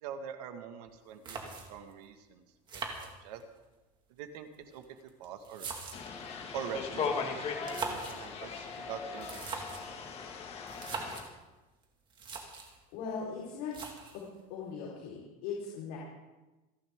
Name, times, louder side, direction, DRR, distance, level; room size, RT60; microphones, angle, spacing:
voice 1, 0.0-2.4 2.7-3.4 4.1-4.8 5.2-5.7 6.5-9.4 9.8-9.9, right 7 dB, 90° right, 6 dB, 1.9 m, -44 dB
sound 1, 0.9-1.0 1.2-1.9 2.7-3.6 4.5-6.2 7.5-8.3 9.1-9.9 10.7-11.3 11.8-11.9 12.1-12.8 13.7-14.3, right 4 dB, 25° right, 2.2 m, -41 dB
sound 2, 5.9-11.2, left 5 dB, 30° left, 1.9 m, -38 dB
voice 2, 12.9-13.7 14.5-16.0, left 6 dB, 65° left, -6 dB, 4.5 m, -39 dB
28.0 x 11.0 x 3.8 m, 1.1 s
cardioid pair, 160°, 20 cm